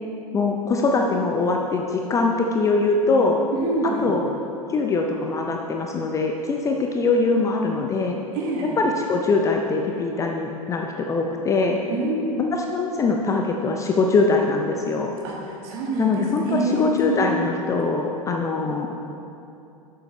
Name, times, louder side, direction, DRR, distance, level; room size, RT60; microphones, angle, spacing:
voice 1, 0.3-3.4 4.0-4.2 4.7-8.2 9.1-11.8 12.7-15.1 16.0-18.9, left 3 dB, 15° left, 2 dB, 0.5 m, -22 dB
voice 2, 3.5-4.1 8.3-8.7 11.9-12.4 15.2-16.9, right 2 dB, 45° right, -2 dB, 1.8 m, -26 dB
11.5 x 7.2 x 3.0 m, 2.8 s
figure-of-eight pair, 95°, 19 cm